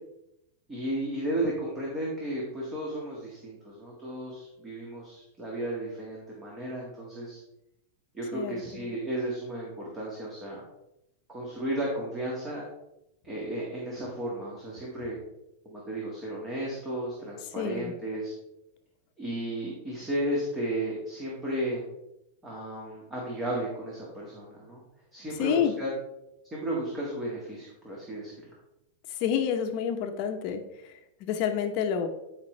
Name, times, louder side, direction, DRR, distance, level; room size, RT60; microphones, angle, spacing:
voice 1, 0.7-7.4 8.1-10.6 11.3-12.6 13.2-15.2 15.6-18.3 19.2-21.8 22.4-24.8 25.1-25.9 26.5-28.5, right 1 dB, 15° right, -4 dB, 1.7 m, -34 dB
voice 2, 8.3-8.9 17.6-17.9 25.4-25.7 29.1-32.1, left 8 dB, 45° left, 5 dB, 0.9 m, -29 dB
11.5 x 5.2 x 3.2 m, 0.86 s
supercardioid pair, 155°, 0 cm